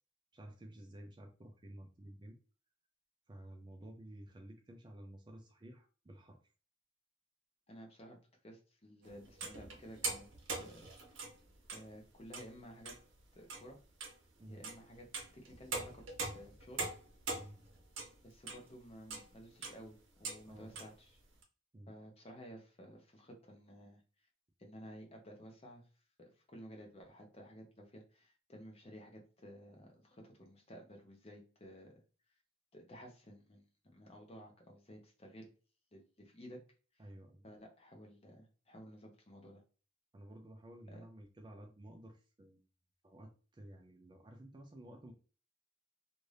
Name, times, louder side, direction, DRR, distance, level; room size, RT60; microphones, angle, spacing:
voice 1, 0.3-2.4 3.3-6.4 14.4-14.6 17.3-17.6 20.5-20.8 21.7-21.9 37.0-37.4 40.1-42.6 43.0-45.1, right 1 dB, 25° right, 3 dB, 0.4 m, -53 dB
voice 2, 7.7-8.2 8.4-10.3 10.6-11.2 11.7-12.9 13.3-13.8 14.4-15.1 15.3-16.0 16.3-16.9 18.2-21.2 21.9-24.0 24.6-25.8 26.2-31.9 32.7-35.5 35.9-36.6 37.0-37.1 37.4-39.6 40.9-41.0, equal, 30° left, 1 dB, 0.8 m, -54 dB
sound 1, 9.0-11.9 12.2-12.5 12.8-13.2 13.5-13.7 14.0-14.1 14.6-18.7 19.1-19.3 19.6-19.9 20.2-20.4 20.8-20.9 21.4-21.5, right 3 dB, 65° right, 0.8 m, -43 dB
2.6 x 2.5 x 3.2 m, 0.36 s
head